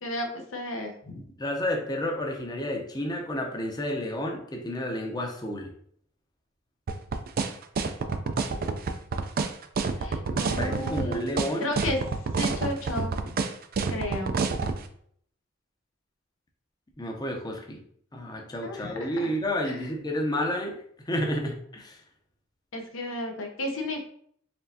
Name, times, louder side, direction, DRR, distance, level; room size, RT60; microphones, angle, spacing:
voice 1, 0.0-1.2 10.0-11.2 11.6-12.0 12.4-13.4 13.9-14.3 18.6-19.3 19.6-19.8 22.7-24.0, left 1 dB, 75° left, 2 dB, 0.8 m, -33 dB
voice 2, 1.4-5.7 10.3-11.7 17.0-17.8 18.1-20.8 21.1-22.0, equal, 20° left, 1 dB, 0.7 m, -31 dB
sound 1, 6.9-14.8, right 4 dB, 45° right, 0.4 m, -27 dB
4.4 x 3.1 x 2.7 m, 0.64 s
head